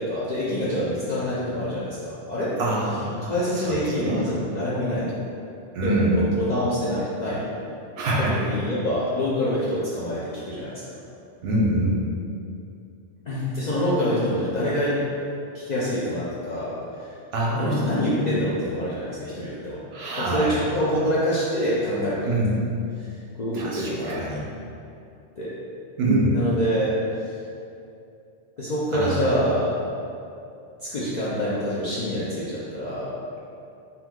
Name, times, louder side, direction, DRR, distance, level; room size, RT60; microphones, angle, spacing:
voice 1, 0.0-2.5 3.3-5.2 5.8-7.4 8.2-11.0 13.3-15.0 15.5-17.2 17.6-19.8 20.2-22.3 23.0-23.1 23.4-24.2 25.4-25.5 26.3-26.9 27.2-27.4 28.6-29.7 30.8-33.1, equal, 60° left, -9 dB, 0.4 m, -26 dB
voice 2, 2.6-3.7 4.0-4.2 5.7-6.3 8.0-8.4 11.4-12.1 17.3-18.5 19.9-20.6 22.2-22.6 23.5-24.4 26.0-26.4 28.9-29.2, right 1 dB, 65° right, -4 dB, 0.8 m, -25 dB
2.8 x 2.3 x 3.4 m, 2.6 s
omnidirectional pair, 1.2 m